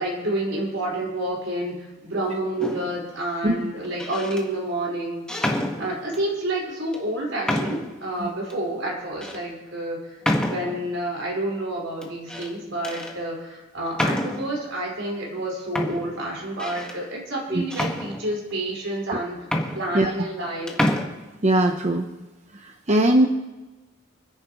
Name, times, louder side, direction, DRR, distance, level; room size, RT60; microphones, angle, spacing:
voice 1, 0.0-5.3 5.8-19.4 19.7-20.7, right 1 dB, 75° right, -2 dB, 4.9 m, -29 dB
sound 1, 2.6-3.0 3.8-4.4 5.3-6.3 6.9-7.0 7.5-8.0 8.5-8.6 9.2-9.4 10.2-10.9 12.0-12.5 12.8-13.1 13.9-14.6 15.4-15.5 15.7-17.0 17.7-18.6 19.1-19.2 19.4-20.4 20.7-21.0, left 1 dB, 5° left, 1.4 m, -28 dB
voice 2, 21.4-22.1 22.6-23.3, right 1 dB, 35° right, 4 dB, 0.8 m, -20 dB
29.0 x 10.5 x 3.1 m, 1.1 s
head